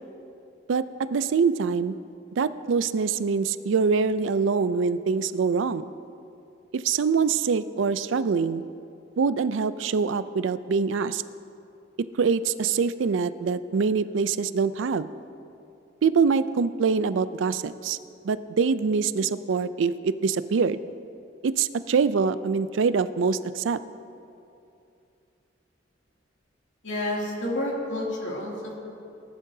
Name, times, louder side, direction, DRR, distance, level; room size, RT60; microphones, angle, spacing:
voice 1, 1.1-1.9 2.3-5.9 6.7-8.6 9.2-11.2 12.2-15.1 16.0-18.0 18.2-20.8 21.4-23.8, right 5 dB, 85° right, 14 dB, 0.4 m, -24 dB
voice 2, 26.8-28.7, left 1 dB, 85° left, -4 dB, 2.6 m, -29 dB
18.5 x 11.5 x 2.7 m, 2.7 s
head